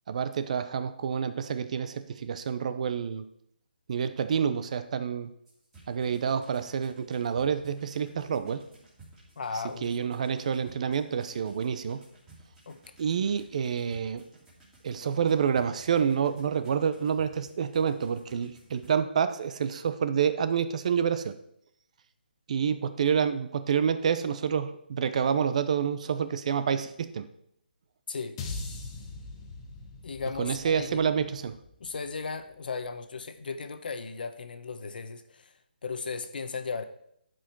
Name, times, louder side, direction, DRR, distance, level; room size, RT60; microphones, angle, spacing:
voice 1, 0.1-3.3 3.9-5.3 5.9-8.6 9.8-12.0 13.0-14.2 14.8-21.4 22.5-27.3 30.4-31.6, right 7 dB, 40° right, 12 dB, 0.7 m, -28 dB
sound 1, 5.5-18.9, right 2 dB, 10° right, 2.7 m, -56 dB
voice 2, 9.4-9.9 12.7-12.8 28.1-28.4 30.0-31.1 31.8-36.8, left 4 dB, 60° left, 10 dB, 1.0 m, -36 dB
sound 2, 28.4-32.7, left 3 dB, 25° left, 1.3 m, -42 dB
12.5 x 5.1 x 4.6 m, 0.73 s
hypercardioid pair, 165°, 6 cm